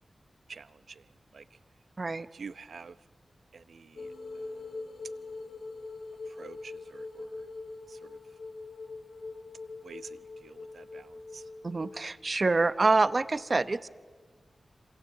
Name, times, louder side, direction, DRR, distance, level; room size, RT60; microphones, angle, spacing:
voice 1, 0.5-1.6 2.3-3.0 3.5-4.5 6.2-7.5 7.9-8.2 9.8-11.5, right 5 dB, 75° right, 13 dB, 0.8 m, -49 dB
sound 1, 4.0-12.0, left 3 dB, 85° left, 4.3 m, -43 dB
voice 2, 11.6-13.9, right 3 dB, 40° right, 13 dB, 0.8 m, -26 dB
27.5 x 27.0 x 7.7 m, 1.5 s
wide cardioid pair, 105°, 0 cm